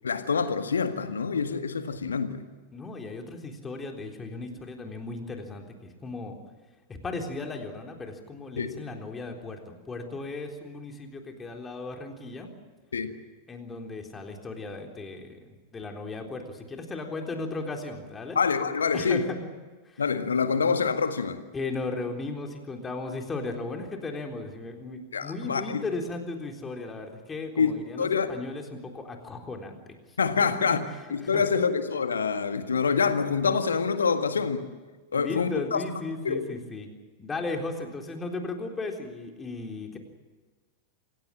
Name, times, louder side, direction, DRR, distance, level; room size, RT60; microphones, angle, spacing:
voice 1, 0.0-2.4 8.6-8.7 12.9-13.1 18.4-19.2 20.0-21.4 25.1-25.8 27.6-28.3 30.2-30.8 31.1-34.6 35.1-35.8 36.2-36.5, left 5 dB, 70° left, 9 dB, 1.8 m, -26 dB
voice 2, 2.7-6.4 6.9-12.5 13.5-18.4 18.9-19.4 19.9-20.0 20.5-20.6 21.5-29.8 30.4-30.5 31.2-31.4 35.1-36.9 37.2-40.0, left 3 dB, 15° left, 3 dB, 3.8 m, -36 dB
27.5 x 17.0 x 8.9 m, 1.3 s
figure-of-eight pair, 90°, 0 cm